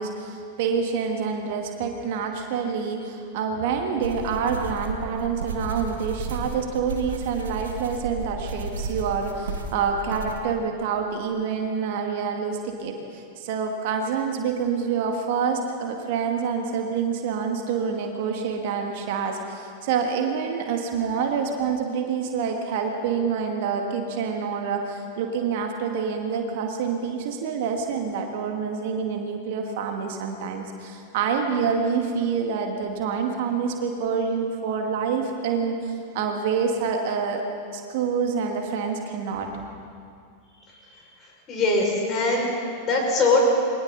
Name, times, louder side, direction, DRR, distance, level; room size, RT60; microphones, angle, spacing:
voice 1, 0.0-37.4 37.7-39.5, right 6 dB, 50° right, 3 dB, 2.1 m, -27 dB
sound 1, 4.0-10.4, right 4 dB, 65° right, 1.8 m, -33 dB
voice 2, 40.5-43.5, left 2 dB, 30° left, -1 dB, 6.2 m, -23 dB
29.0 x 22.5 x 4.2 m, 2.3 s
figure-of-eight pair, 90°, 0 cm